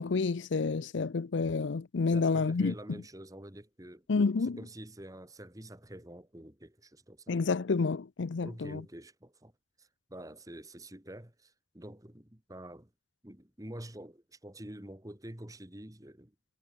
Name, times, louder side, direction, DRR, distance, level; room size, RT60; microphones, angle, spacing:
voice 1, 0.0-3.0 4.1-4.6 7.3-8.8, left 4 dB, 70° left, 0.5 m, -29 dB
voice 2, 2.1-4.1 4.4-7.4 8.4-9.5 9.8-12.9 13.2-16.3, right 1 dB, 20° right, 1.9 m, -47 dB
head